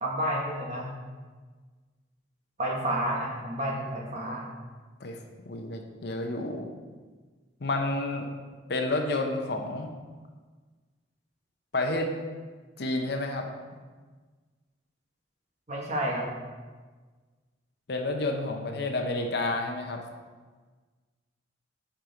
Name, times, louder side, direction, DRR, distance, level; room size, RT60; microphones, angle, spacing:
voice 1, 0.0-0.9 2.6-4.5 15.7-16.3, right 1 dB, 35° right, -1 dB, 1.2 m, -30 dB
voice 2, 5.4-6.7 7.6-8.3 8.7-9.9 11.7-12.1 12.8-13.5 17.9-20.0, left 2 dB, 55° left, 3 dB, 0.7 m, -30 dB
7.4 x 5.0 x 3.9 m, 1.4 s
head